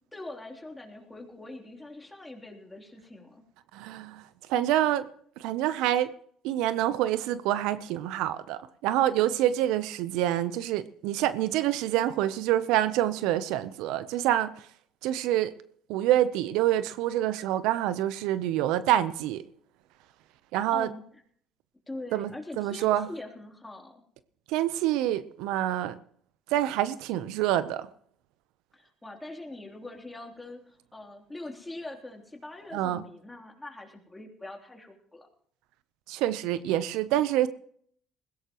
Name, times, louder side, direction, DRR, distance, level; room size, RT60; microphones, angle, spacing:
voice 1, 0.1-3.4 20.7-21.0 21.9-24.0 28.7-35.3, left 2 dB, 15° left, 1 dB, 3.3 m, -43 dB
voice 2, 3.7-4.2 4.5-5.1 5.4-6.1 6.4-14.5 15.0-15.5 15.9-19.4 20.5-20.9 22.1-22.3 22.6-23.1 24.5-25.9 26.5-27.9 32.7-33.0 36.1-37.5, right 13 dB, 75° right, 14 dB, 0.7 m, -26 dB
20.5 x 16.0 x 3.0 m, 0.62 s
supercardioid pair, 75°, 0 cm